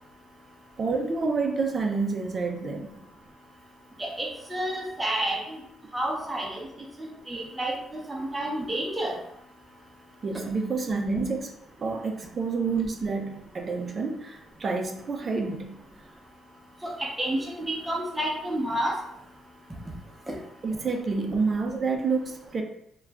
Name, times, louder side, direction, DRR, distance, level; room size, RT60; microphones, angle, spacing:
voice 1, 0.8-3.0 10.2-11.5 11.8-15.8 20.6-22.6, right 4 dB, 40° right, 4 dB, 0.4 m, -28 dB
voice 2, 4.0-5.6 5.9-6.6 7.0-7.8 8.1-9.2 16.8-19.0, right 1 dB, 15° right, -1 dB, 0.8 m, -30 dB
2.4 x 2.2 x 3.2 m, 0.76 s
cardioid pair, 90°, 0 cm